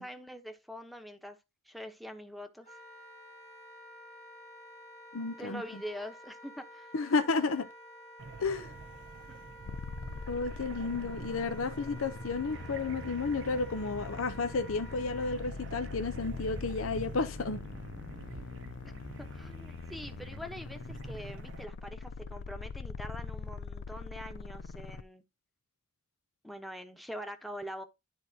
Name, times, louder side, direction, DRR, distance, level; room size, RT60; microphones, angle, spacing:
voice 1, 0.0-1.4 1.7-2.7 5.4-6.9 9.3-9.4 18.9-19.0 19.3-25.2 26.4-27.8, equal, ahead, 0.9 m, -44 dB
Wind instrument woodwind instrument, 2.6-15.4, equal, 30° left, 1.7 m, -51 dB
voice 2, 5.1-5.6 6.9-7.7 8.4-8.7 10.3-17.6, left 4 dB, 85° left, 0.7 m, -32 dB
sound 1, 8.2-21.6, right 4 dB, 65° right, 0.6 m, -47 dB
sound 2, 9.6-25.0, left 5 dB, 60° left, 0.4 m, -43 dB
12.0 x 4.2 x 2.8 m
head